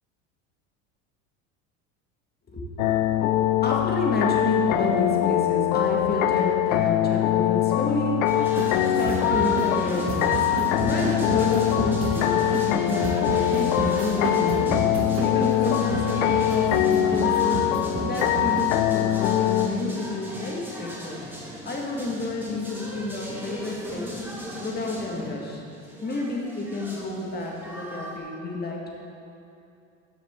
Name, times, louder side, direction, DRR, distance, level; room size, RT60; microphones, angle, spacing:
voice 1, 2.5-8.4 8.8-10.3 10.6-17.6 18.0-21.2 21.6-24.1 24.6-25.6 26.0-28.9, left 2 dB, 25° left, -1 dB, 1.7 m, -30 dB
sound 1, 2.8-19.7, left 13 dB, 90° left, 0.5 m, -23 dB
sound 2, 8.3-28.2, right 1 dB, 5° right, 2.0 m, -38 dB
sound 3, 8.5-18.6, right 4 dB, 35° right, 1.1 m, -31 dB
12.5 x 7.1 x 3.7 m, 2.7 s
supercardioid pair, 105°, 39 cm